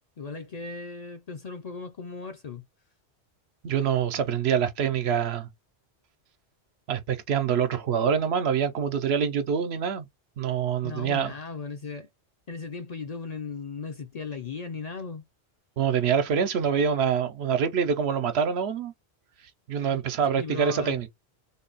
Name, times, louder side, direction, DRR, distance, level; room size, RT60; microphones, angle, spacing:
voice 1, 0.2-2.6 10.8-12.1 12.5-15.2 19.9-20.0 20.3-21.0, left 4 dB, 45° left, 0.6 m, -37 dB
voice 2, 3.6-5.5 6.9-10.1 10.4-11.3 15.8-18.9 19.7-21.1, right 7 dB, 70° right, 0.9 m, -25 dB
3.6 x 2.2 x 3.9 m
omnidirectional pair, 1.1 m